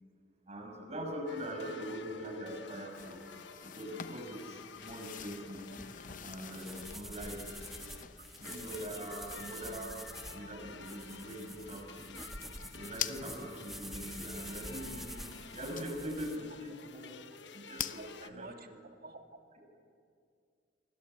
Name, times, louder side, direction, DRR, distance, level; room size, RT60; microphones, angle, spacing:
voice 1, 0.5-3.2 3.6-7.7 8.4-10.0 10.3-12.2 12.7-17.1 17.5-18.8, equal, 40° right, 2 dB, 6.3 m, -42 dB
sound 1, 1.3-18.3, left 5 dB, 85° left, 1.2 m, -52 dB
sound 2, 2.9-13.9 14.5-14.6 15.8-16.2 16.6-16.7 17.0-17.1 17.4-18.0, left 9 dB, 50° left, 0.9 m, -46 dB
sound 3, 5.8-16.4, equal, ahead, 1.4 m, -47 dB
voice 2, 8.2-8.5 18.0-19.2, right 2 dB, 55° right, 5 dB, 2.3 m, -51 dB
29.5 x 24.0 x 8.3 m, 2.3 s
head